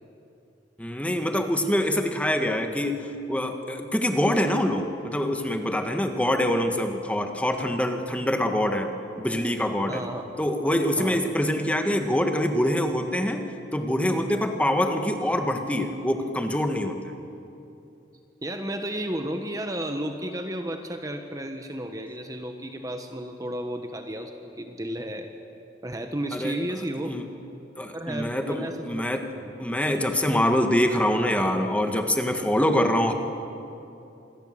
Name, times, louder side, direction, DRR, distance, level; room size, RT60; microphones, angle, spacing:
voice 1, 0.8-8.9 9.2-10.0 10.4-13.4 13.7-17.0 26.3-26.6 27.0-27.2 27.8-29.2 29.6-33.1, left 1 dB, 10° left, 5 dB, 1.5 m, -25 dB
voice 2, 9.9-10.3 11.0-11.2 18.4-25.3 25.8-27.2 27.9-29.5, right 1 dB, 20° right, 5 dB, 1.2 m, -33 dB
26.5 x 20.5 x 7.7 m, 2.8 s
head